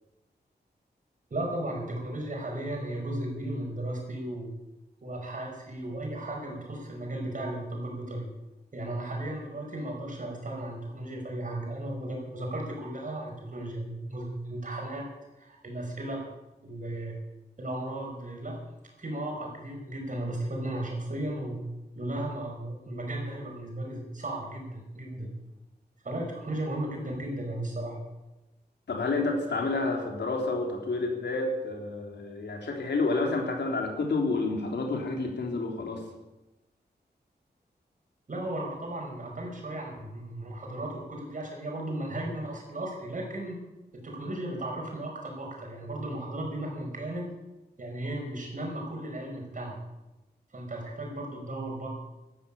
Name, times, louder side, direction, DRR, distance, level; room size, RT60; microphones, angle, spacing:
voice 1, 1.3-4.5 5.0-8.3 8.7-15.1 15.4-16.2 16.6-17.2 17.6-18.6 19.0-21.6 21.9-25.3 26.0-28.0 38.3-43.6 43.9-47.3 47.8-49.8 50.5-51.9, right 1 dB, 50° right, 0 dB, 5.4 m, -35 dB
voice 2, 28.9-36.0, left 3 dB, 85° left, 1 dB, 3.6 m, -29 dB
13.5 x 12.5 x 8.6 m, 1.0 s
wide cardioid pair, 130°, 17 cm